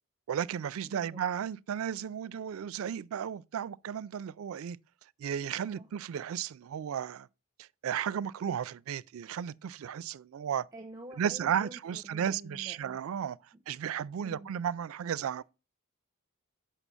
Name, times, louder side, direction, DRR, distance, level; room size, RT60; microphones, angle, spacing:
voice 1, 0.3-4.8 5.2-7.3 7.6-10.7 11.2-13.4 13.7-15.4, right 8 dB, 80° right, 0.3 m, -34 dB
voice 2, 0.8-1.2 5.6-5.9 10.7-13.0 13.5-13.6 14.2-14.5, right 1 dB, 15° right, 0.8 m, -48 dB
7.2 x 5.6 x 6.8 m
head